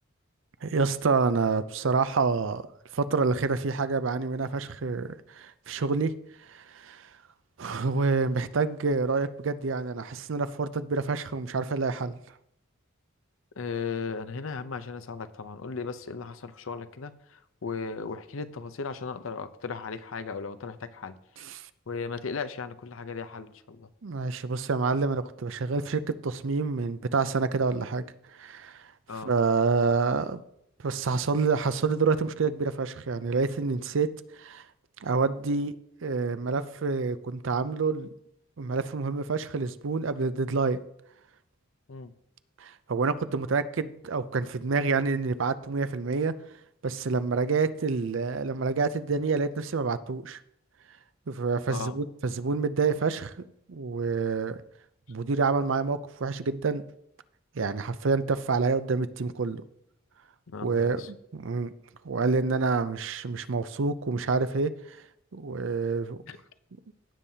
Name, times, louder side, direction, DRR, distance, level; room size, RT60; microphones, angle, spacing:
voice 1, 0.6-2.7 2.9-6.1 6.5-7.0 7.6-12.2 24.0-28.0 28.4-28.8 29.3-30.4 30.8-34.1 34.4-34.6 35.0-35.8 36.0-38.1 38.6-40.8 42.6-46.3 46.8-50.4 51.3-53.3 53.7-54.6 55.1-56.8 57.6-59.6 60.6-61.7 62.0-65.0 65.3-66.2, right 4 dB, 65° right, 0.5 m, -27 dB
voice 2, 13.6-21.1 21.9-23.9 29.1-29.3 41.9-42.1 51.7-52.0 60.5-61.1 66.3-66.4, left 5 dB, 75° left, 0.6 m, -36 dB
16.5 x 7.4 x 2.8 m
head